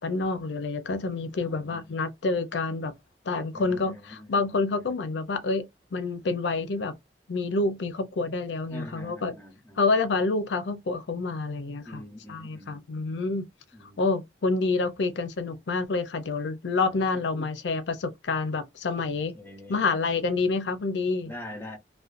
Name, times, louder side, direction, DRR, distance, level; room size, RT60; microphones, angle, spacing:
voice 1, 0.0-2.9 3.3-5.7 5.9-6.9 7.3-9.3 9.8-12.0 12.3-13.5 14.0-19.3 19.7-21.3, left 3 dB, 85° left, 0.5 m, -28 dB
voice 2, 1.4-2.0 3.5-4.9 8.7-9.8 11.8-12.8 13.7-14.1 17.4-17.5 19.0-19.9 21.2-21.8, left 1 dB, 15° left, 0.6 m, -44 dB
2.4 x 2.2 x 2.4 m
head